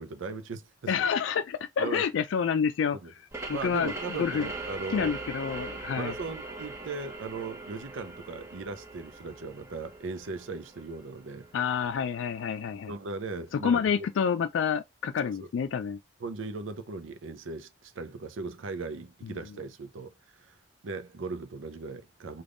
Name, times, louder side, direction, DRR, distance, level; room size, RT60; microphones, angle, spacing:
voice 1, 0.0-1.1 1.8-2.1 3.0-3.1 3.5-5.2 6.0-11.5 12.9-13.8 15.3-15.5 16.2-20.5 20.8-22.4, right 3 dB, 85° right, 0.5 m, -38 dB
voice 2, 0.9-3.0 3.5-4.5 4.9-6.1 11.5-12.9 13.5-16.0 19.2-19.3, left 7 dB, 80° left, 0.3 m, -28 dB
sound 1, 3.3-12.7, right 3 dB, 15° right, 0.9 m, -41 dB
3.5 x 2.3 x 3.7 m
head